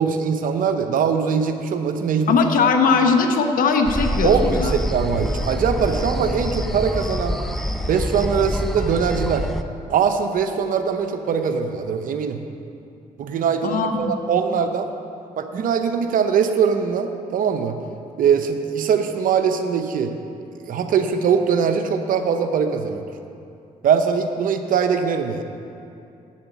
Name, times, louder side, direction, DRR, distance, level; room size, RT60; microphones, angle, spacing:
voice 1, 0.0-2.3 4.2-7.4 7.9-9.5 9.9-12.4 13.2-14.9 15.4-17.8 18.2-20.1 20.6-23.0 23.8-25.4, right 6 dB, 70° right, 7 dB, 0.8 m, -21 dB
voice 2, 2.3-4.7 13.6-14.1, left 4 dB, 70° left, 5 dB, 1.0 m, -19 dB
sound 1, 3.8-9.6, equal, ahead, 0.7 m, -26 dB
8.0 x 7.3 x 8.3 m, 2.6 s
supercardioid pair, 65°, 15 cm